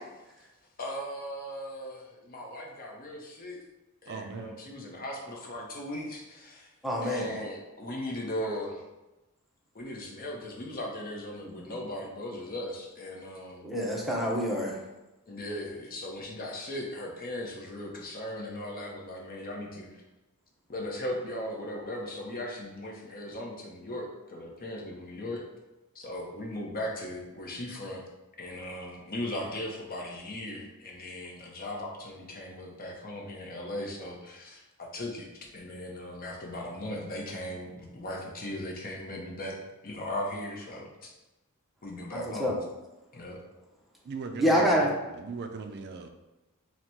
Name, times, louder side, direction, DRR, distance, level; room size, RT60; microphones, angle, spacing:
voice 1, 0.8-3.6 4.0-6.7 7.0-8.8 9.7-13.7 15.3-19.9 20.7-25.4 25.9-28.0 28.4-35.3 35.5-39.6 39.8-41.1 41.8-42.6 43.1-43.4, left 1 dB, 40° left, 0 dB, 0.8 m, -38 dB
voice 2, 4.1-4.5 44.1-46.1, right 4 dB, 50° right, 6 dB, 0.3 m, -39 dB
voice 3, 6.8-7.3 13.6-14.8 42.1-42.5 44.4-44.9, equal, ahead, -3 dB, 0.6 m, -26 dB
4.0 x 2.1 x 4.4 m, 1.1 s
head